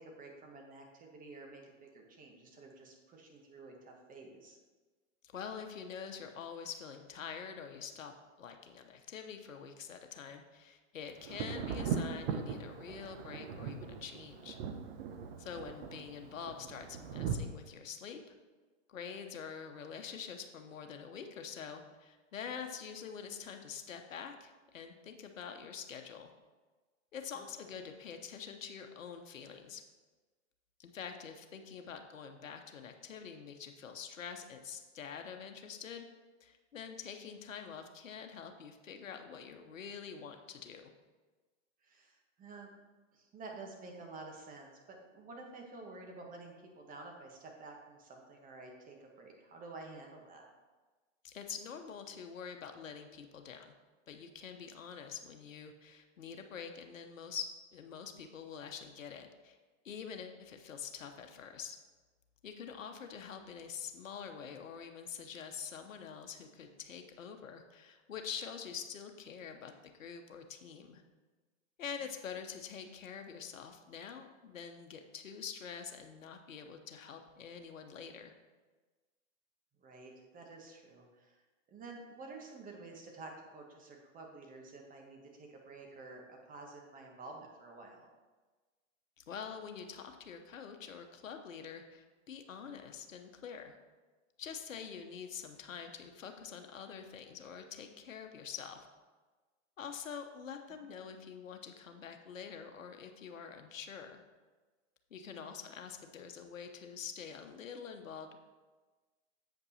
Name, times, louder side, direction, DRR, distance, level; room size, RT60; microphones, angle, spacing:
voice 1, 0.0-4.6 27.3-27.5 41.8-42.7 43.1-50.5 72.0-72.1 79.8-81.4 81.7-88.1 105.2-105.6, right 3 dB, 20° right, 1 dB, 1.4 m, -51 dB
voice 2, 5.3-8.1 8.4-14.6 15.4-18.2 18.9-26.3 27.1-29.8 30.8-36.0 36.4-40.9 51.2-53.7 54.1-59.6 59.8-61.8 62.4-71.0 71.8-78.3 89.2-93.8 94.4-98.9 99.8-104.2 105.1-108.4, left 7 dB, 90° left, 5 dB, 0.9 m, -46 dB
Thunder, 11.2-17.4, right 7 dB, 50° right, 0.9 m, -39 dB
8.0 x 5.3 x 4.2 m, 1.3 s
hypercardioid pair, 120°, 38 cm